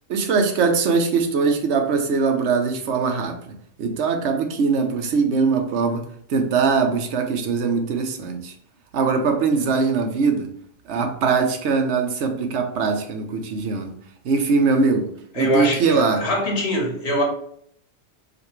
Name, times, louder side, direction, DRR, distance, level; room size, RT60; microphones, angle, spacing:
voice 1, 0.1-8.5 8.9-10.5 10.9-13.9 14.2-16.2, right 4 dB, 80° right, 5 dB, 1.0 m, -21 dB
voice 2, 15.4-17.2, left 1 dB, 70° left, -1 dB, 1.5 m, -23 dB
5.1 x 2.5 x 3.0 m, 0.65 s
omnidirectional pair, 1.1 m